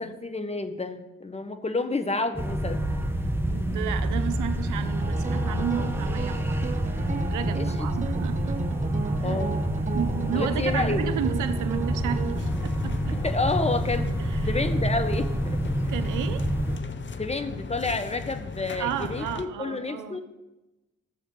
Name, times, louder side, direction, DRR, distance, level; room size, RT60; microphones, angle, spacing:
voice 1, 0.0-2.8 7.5-7.9 9.2-9.6 10.3-11.0 13.1-14.1 14.5-15.9 17.2-20.2, left 3 dB, 20° left, 8 dB, 1.3 m, -30 dB
sound 1, 2.3-16.8, equal, 5° right, 1.3 m, -28 dB
voice 2, 3.5-6.9 7.3-8.8 9.2-9.4 9.9-13.2 14.2-14.6 15.8-16.5 18.8-20.2, right 9 dB, 80° right, 10 dB, 0.8 m, -33 dB
sound 2, 5.0-12.4, right 5 dB, 25° right, 0.5 m, -34 dB
sound 3, 12.3-19.5, left 5 dB, 40° left, 0.9 m, -37 dB
14.0 x 6.6 x 3.9 m, 1.0 s
supercardioid pair, 50°, 30 cm